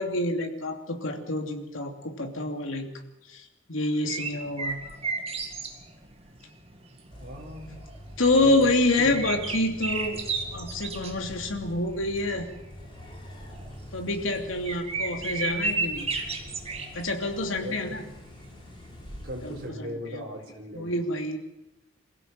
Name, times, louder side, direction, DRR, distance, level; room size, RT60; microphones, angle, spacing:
voice 1, 0.0-2.9 3.3-4.8 8.2-10.2 10.5-12.5 13.9-16.1 16.9-18.0 19.4-20.2 20.7-21.4, left 2 dB, 80° left, 4 dB, 2.8 m, -27 dB
sound 1, 4.1-19.2, right 4 dB, 30° right, 2.2 m, -34 dB
sound 2, 7.1-19.7, equal, 25° left, 3.9 m, -45 dB
voice 2, 7.2-7.8 8.4-8.7 9.0-9.2 17.6-18.0 19.2-20.9, equal, 50° right, 0 dB, 4.4 m, -38 dB
23.5 x 16.0 x 7.6 m, 0.95 s
head